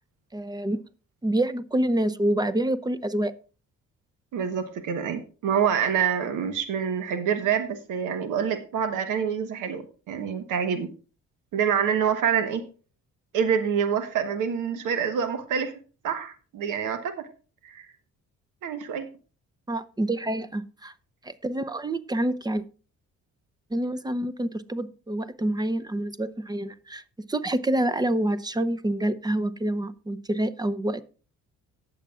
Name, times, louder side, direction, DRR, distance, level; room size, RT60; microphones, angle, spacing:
voice 1, 0.3-0.8 1.2-3.3 19.7-20.9 21.2-22.6 23.7-27.0 27.3-31.0, right 1 dB, 15° right, 14 dB, 0.7 m, -27 dB
voice 2, 4.3-10.9 11.5-12.7 13.3-15.7 16.0-17.3 17.6-17.9 18.6-19.1, right 7 dB, 85° right, 10 dB, 1.2 m, -26 dB
18.5 x 7.0 x 2.4 m, 0.37 s
cardioid pair, 90°, 30 cm